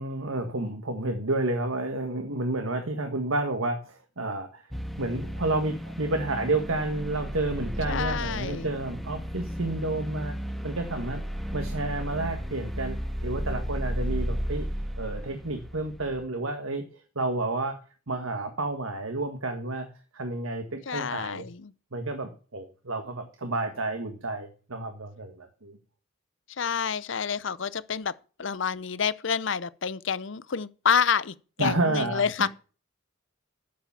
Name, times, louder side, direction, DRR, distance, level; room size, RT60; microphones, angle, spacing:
voice 1, 0.0-4.6 5.0-10.4 10.6-11.2 11.5-13.0 13.2-14.7 15.0-16.9 17.2-17.8 18.1-19.9 20.1-21.4 21.9-25.8 31.6-32.5, right 2 dB, 85° right, 1.7 m, -30 dB
sound 1, 4.7-16.3, equal, ahead, 1.4 m, -34 dB
voice 2, 7.9-8.7 20.9-21.7 26.6-28.1 28.4-32.5, left 7 dB, 60° left, 0.6 m, -28 dB
10.0 x 7.5 x 7.2 m
head